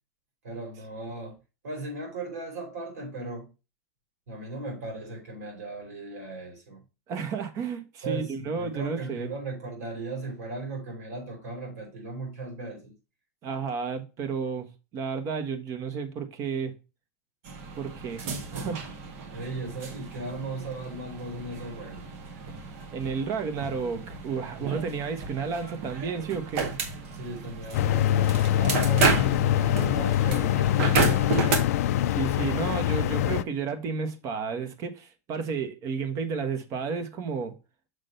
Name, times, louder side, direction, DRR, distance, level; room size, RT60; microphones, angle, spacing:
voice 1, 0.4-1.4 1.6-3.5 4.3-6.8 8.0-12.9 19.3-22.1 24.6-24.8 27.1-31.7, right 2 dB, 90° right, 4.4 m, -37 dB
voice 2, 7.1-9.3 13.4-16.7 17.7-18.2 18.5-18.8 22.9-26.7 32.1-37.6, right 5 dB, 40° right, 1.3 m, -32 dB
sound 1, 17.4-31.6, right 4 dB, 60° right, 1.8 m, -32 dB
sound 2, 27.7-33.4, left 12 dB, 75° left, 0.4 m, -24 dB
6.5 x 3.7 x 5.4 m
supercardioid pair, 135°, 8 cm